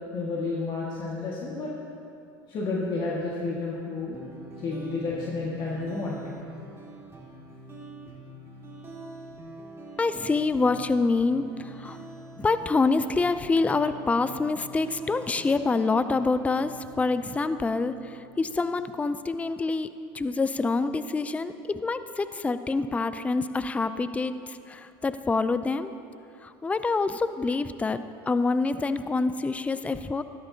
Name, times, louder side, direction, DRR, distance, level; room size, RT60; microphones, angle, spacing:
voice 1, 0.1-1.7 2.5-4.3 4.6-6.2, left 3 dB, 40° left, -5 dB, 1.7 m, -31 dB
sound 1, 4.1-19.2, right 2 dB, 25° right, 2.5 m, -45 dB
voice 2, 10.0-12.0 12.4-25.9 26.4-30.2, left 3 dB, 10° left, 12 dB, 0.4 m, -26 dB
14.5 x 12.5 x 2.8 m, 2.6 s
supercardioid pair, 95°, 12 cm